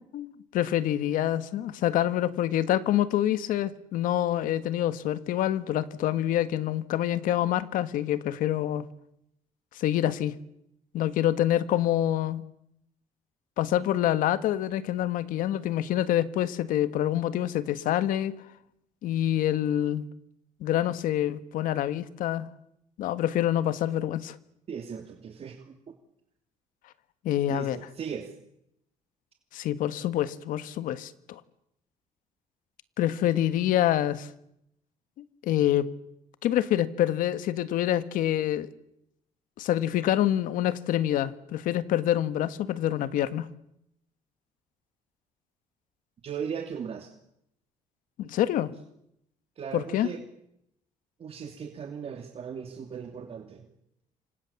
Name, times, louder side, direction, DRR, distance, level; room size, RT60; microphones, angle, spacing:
voice 1, 0.1-8.9 9.7-10.3 10.9-12.4 13.6-18.3 19.0-20.0 20.6-22.5 23.0-24.4 27.2-27.8 29.5-31.4 33.0-34.3 35.2-35.9 36.4-38.7 39.6-43.5 48.2-48.7 49.7-50.1, left 12 dB, 85° left, 13 dB, 1.6 m, -26 dB
voice 2, 24.7-25.7 27.5-28.3 46.2-47.1 49.6-50.2 51.2-53.7, right 7 dB, 45° right, 4 dB, 2.8 m, -37 dB
29.0 x 25.5 x 7.2 m, 0.78 s
cardioid pair, 125°, 14 cm